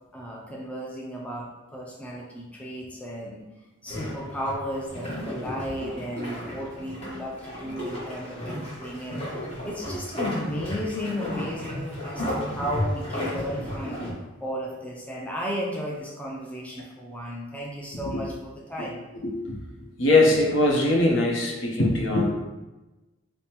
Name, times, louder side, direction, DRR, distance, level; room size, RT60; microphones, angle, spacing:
voice 1, 0.1-3.4 3.8-14.0 14.4-19.0, equal, 5° left, -3 dB, 0.4 m, -34 dB
sound 1, 3.9-14.1, left 1 dB, 30° left, 1.1 m, -33 dB
voice 2, 19.2-19.6 20.0-22.3, left 2 dB, 70° left, 0 dB, 0.7 m, -21 dB
5.2 x 2.1 x 2.8 m, 1.1 s
head